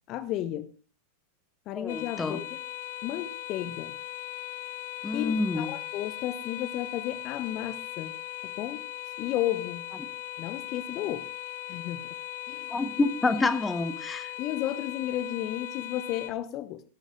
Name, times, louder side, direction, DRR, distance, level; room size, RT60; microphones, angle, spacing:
voice 1, 0.1-0.7 1.7-2.6 3.0-4.0 5.1-8.2 8.4-8.9 9.2-9.9 10.4-11.3 11.7-12.2 12.5-12.7 13.2-13.4 14.4-16.8, left 13 dB, 35° left, 13 dB, 1.0 m, -33 dB
voice 2, 1.7-2.4 5.0-5.7 12.7-14.3, left 3 dB, 10° left, 12 dB, 1.4 m, -28 dB
sound 1, 1.9-16.3, left 13 dB, 55° left, 1.9 m, -39 dB
17.0 x 12.0 x 3.7 m, 0.32 s
figure-of-eight pair, 90°, 0 cm